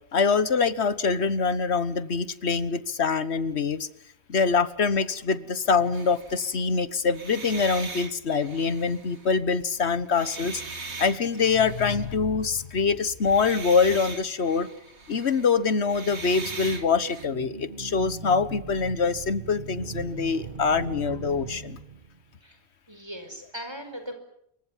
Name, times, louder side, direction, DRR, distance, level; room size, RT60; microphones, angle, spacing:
voice 1, 0.1-3.9 4.3-10.6 11.0-14.7 15.1-21.8, left 5 dB, 75° left, 15 dB, 1.5 m, -24 dB
sound 1, 5.9-6.5 7.1-9.6 10.0-12.1 13.2-17.3, right 3 dB, 85° right, 2.5 m, -40 dB
sound 2, 15.9-22.2, right 5 dB, 50° right, 1.4 m, -40 dB
voice 2, 22.9-24.1, equal, 25° right, 6 dB, 5.1 m, -39 dB
28.0 x 23.5 x 7.4 m, 0.75 s
omnidirectional pair, 1.1 m